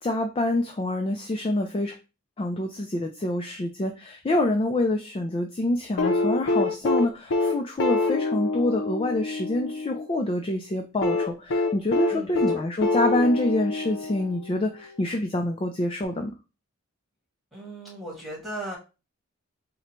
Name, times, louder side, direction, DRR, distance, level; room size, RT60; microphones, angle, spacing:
voice 1, 0.0-1.9 2.4-16.4, left 1 dB, 30° left, 4 dB, 0.4 m, -26 dB
sound 1, 6.0-10.1 11.0-14.6 16.0-16.1, left 3 dB, 85° left, 0.5 m, -26 dB
voice 2, 12.1-12.6 17.5-18.8, right 1 dB, ahead, -4 dB, 1.7 m, -37 dB
3.8 x 2.2 x 4.3 m, 0.30 s
head